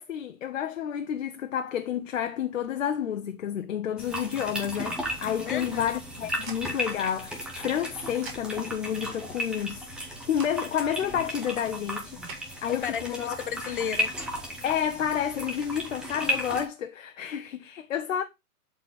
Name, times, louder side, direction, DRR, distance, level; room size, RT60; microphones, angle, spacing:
voice 1, 0.0-9.8 10.3-12.2 12.6-13.3 14.6-18.2, left 9 dB, 55° left, 0.9 m, -30 dB
sound 1, 4.0-16.6, equal, ahead, 0.8 m, -35 dB
voice 2, 5.5-5.9 12.8-14.1, left 8 dB, 35° left, 0.6 m, -33 dB
sound 2, 5.9-12.4, right 4 dB, 45° right, 4.7 m, -49 dB
11.5 x 4.3 x 4.0 m
hypercardioid pair, 150°, 44 cm